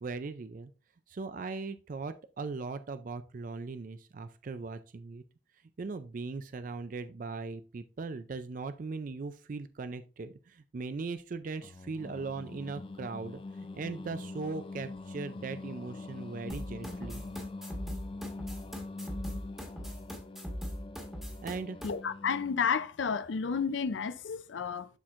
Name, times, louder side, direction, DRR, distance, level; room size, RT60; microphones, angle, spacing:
voice 1, 0.0-0.7 1.1-5.2 5.8-13.4 13.7-17.2 21.4-21.8, right 4 dB, 45° right, 0.4 m, -39 dB
Singing, 11.6-22.8, left 3 dB, 30° left, 0.3 m, -44 dB
sound 1, 16.5-21.9, equal, ahead, 1.5 m, -40 dB
voice 2, 21.8-24.9, left 6 dB, 85° left, 0.5 m, -31 dB
11.5 x 4.4 x 2.5 m
head